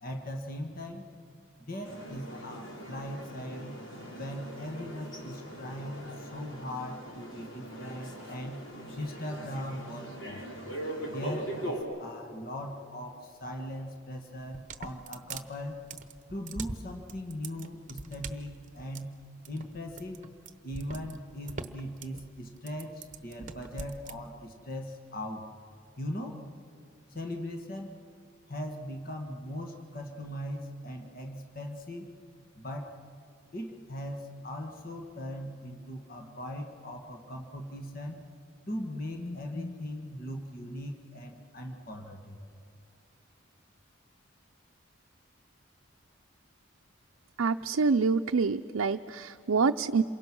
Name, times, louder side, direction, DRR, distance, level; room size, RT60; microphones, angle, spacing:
voice 1, 0.0-1.1 1.7-3.8 4.2-8.6 9.0-10.4 11.1-15.9 16.3-20.2 20.6-25.5 26.0-26.4 27.1-28.0 28.5-32.1 32.6-33.0 33.5-38.3 38.7-42.5, left 1 dB, 45° left, 3 dB, 1.7 m, -39 dB
sound 1, 1.8-11.8, right 1 dB, 70° left, 4.1 m, -41 dB
sound 2, 14.4-24.2, right 4 dB, 40° right, 1.0 m, -43 dB
voice 2, 47.4-50.0, right 4 dB, 90° right, 4 dB, 0.5 m, -26 dB
27.5 x 23.0 x 6.2 m, 2.6 s
head